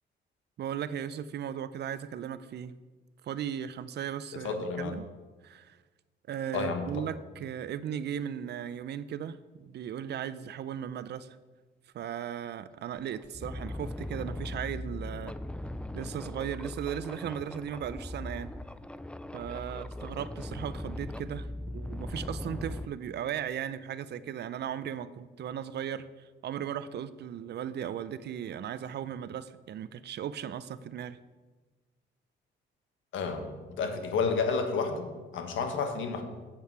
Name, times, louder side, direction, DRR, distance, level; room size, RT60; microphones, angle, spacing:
voice 1, 0.6-2.7 3.2-5.1 5.4-5.8 6.3-11.4 11.9-15.3 15.9-18.5 19.3-21.5 21.7-31.2, right 9 dB, 60° right, 15 dB, 0.5 m, -37 dB
voice 2, 4.4-5.0 6.5-7.1 33.1-36.2, left 5 dB, 75° left, 6 dB, 1.4 m, -31 dB
sound 1, 12.4-12.5 13.0-22.9, left 1 dB, 5° left, 0.4 m, -39 dB
8.5 x 8.3 x 4.7 m, 1.3 s
cardioid pair, 90°, 20 cm